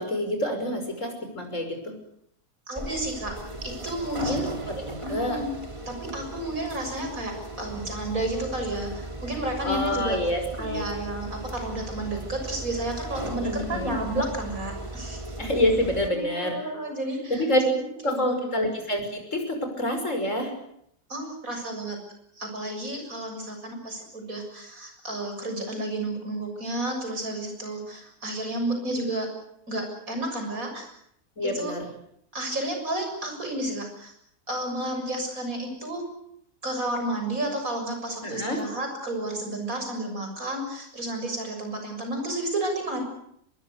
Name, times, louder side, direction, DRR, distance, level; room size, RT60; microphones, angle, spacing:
voice 1, 0.0-1.9 4.3-5.4 9.6-10.9 13.2-14.0 15.4-16.6 17.3-17.6 18.0-20.5 31.4-31.9 38.2-38.6, left 1 dB, 55° left, 5 dB, 6.3 m, -27 dB
voice 2, 2.7-3.3 3.6-4.5 5.0-5.5 5.9-10.2 10.6-15.2 16.1-18.6 21.1-22.0 22.3-29.3 29.7-30.9 31.4-31.8 32.3-34.1 34.5-36.0 36.6-43.0, right 1 dB, 60° right, 5 dB, 7.3 m, -31 dB
sound 1, 2.8-16.1, right 2 dB, 20° right, 2.9 m, -37 dB
23.5 x 21.5 x 8.1 m, 0.73 s
omnidirectional pair, 1.6 m